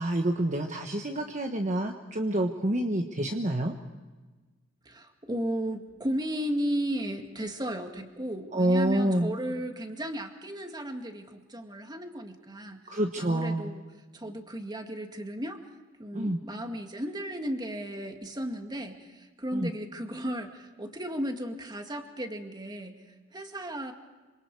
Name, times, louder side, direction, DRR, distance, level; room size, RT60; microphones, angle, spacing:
voice 1, 0.0-3.7 8.5-9.3 12.9-13.7 16.1-16.4 19.5-19.7, right 1 dB, 35° right, 3 dB, 1.3 m, -27 dB
voice 2, 4.9-13.8 14.1-15.6 16.0-23.0 23.3-23.9, equal, 20° right, 4 dB, 2.1 m, -35 dB
27.0 x 26.0 x 4.8 m, 1.3 s
head